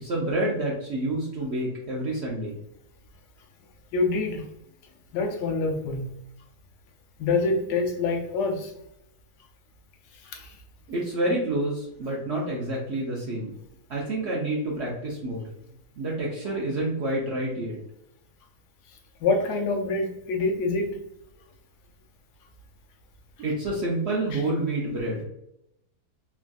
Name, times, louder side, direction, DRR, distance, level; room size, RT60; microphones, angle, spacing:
voice 1, 0.0-2.5 10.9-13.5 13.9-15.4 16.0-17.8 23.4-25.2, right 1 dB, 75° right, -3 dB, 0.6 m, -28 dB
voice 2, 3.9-4.5 5.1-6.1 7.2-8.7 10.1-10.6 19.2-21.0 24.3-24.4, left 3 dB, 75° left, 3 dB, 1.2 m, -26 dB
3.3 x 2.4 x 2.2 m, 0.79 s
omnidirectional pair, 1.8 m